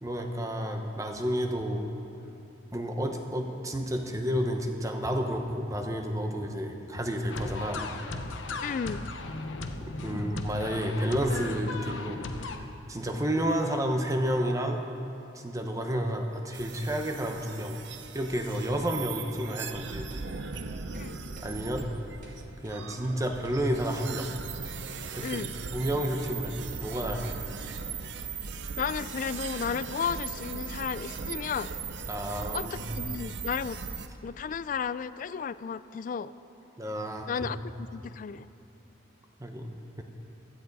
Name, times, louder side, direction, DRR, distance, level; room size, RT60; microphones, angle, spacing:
voice 1, 0.0-1.9 2.7-7.8 10.0-14.8 15.3-17.8 18.1-20.1 21.4-21.9 22.6-24.3 25.1-25.4 25.7-27.5 32.1-33.0 36.8-37.5 39.4-40.0, equal, 15° right, 4 dB, 1.0 m, -31 dB
sound 1, 7.3-12.6, left 3 dB, 85° left, 0.9 m, -36 dB
voice 2, 8.6-9.1 20.9-21.2 25.2-25.5 28.8-31.7 32.5-33.9 34.2-36.3 37.3-38.5, left 6 dB, 45° left, 16 dB, 0.3 m, -33 dB
sound 2, 16.5-34.1, right 5 dB, 65° right, 0.6 m, -39 dB
sound 3, 19.7-19.8 20.1-20.2 20.5-20.7 20.9-21.1 21.4-21.5 21.8-21.9 22.2-22.4 22.6-22.8 23.0-23.1 23.4-23.6 23.8-24.0 24.2-24.3 24.6-24.8 25.0-25.1 25.4-25.5 25.8-25.9 26.2-26.3, right 2 dB, 40° right, 2.5 m, -52 dB
16.0 x 13.0 x 4.1 m, 2.8 s
head